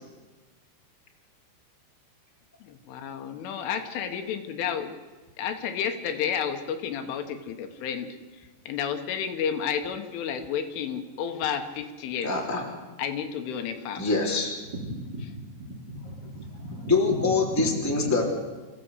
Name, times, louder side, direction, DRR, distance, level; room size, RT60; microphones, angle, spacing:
voice 1, 2.6-5.0 5.4-12.3 13.0-14.1, left 8 dB, 75° left, 6 dB, 3.8 m, -31 dB
voice 2, 12.2-12.6 13.9-14.5 16.7-18.2, left 3 dB, 5° left, -1 dB, 2.3 m, -25 dB
voice 3, 14.8-16.9 17.2-17.3 18.0-18.1, equal, 25° right, -1 dB, 3.1 m, -38 dB
28.5 x 15.5 x 8.1 m, 1.3 s
omnidirectional pair, 5.8 m